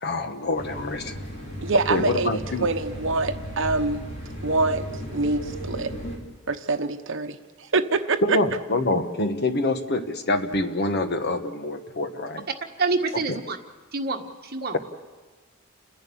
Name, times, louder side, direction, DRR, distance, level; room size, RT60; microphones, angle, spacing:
voice 1, 0.0-1.2 1.9-2.7 8.2-12.5 13.1-13.4, left 2 dB, 50° left, 8 dB, 1.3 m, -26 dB
sound 1, 0.6-6.2, equal, 35° left, 4.1 m, -35 dB
voice 2, 1.6-4.0 4.4-4.9 5.1-5.9 6.5-8.4, right 3 dB, 65° right, 8 dB, 1.0 m, -25 dB
voice 3, 12.8-13.6 13.9-14.7, right 3 dB, 50° right, 3 dB, 1.6 m, -27 dB
30.0 x 11.0 x 8.6 m, 1.3 s
head